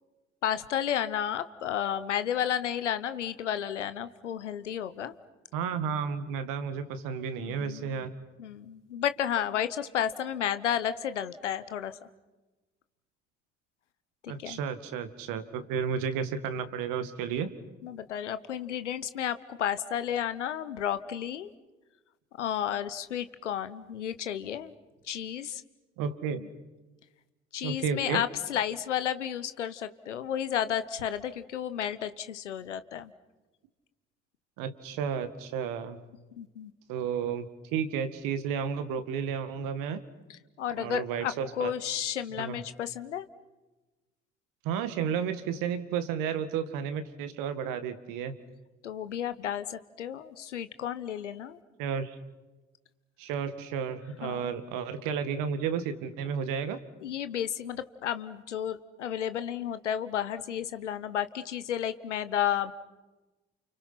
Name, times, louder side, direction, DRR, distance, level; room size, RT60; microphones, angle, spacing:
voice 1, 0.4-5.1 7.4-8.1 8.4-11.9 14.2-14.6 17.8-21.5 22.4-24.7 25.0-25.6 26.3-26.5 27.5-33.1 36.4-36.7 40.3-43.3 48.8-51.6 54.2-54.5 57.0-62.7, left 9 dB, 90° left, 13 dB, 1.0 m, -32 dB
voice 2, 5.5-8.1 14.3-17.5 26.0-26.4 27.6-28.2 34.6-36.0 36.9-40.0 40.8-41.7 42.4-42.6 44.6-48.4 51.8-52.2 53.2-56.8, right 7 dB, 70° right, 10 dB, 2.1 m, -32 dB
30.0 x 29.0 x 5.9 m, 1.1 s
hypercardioid pair, 50°, 35 cm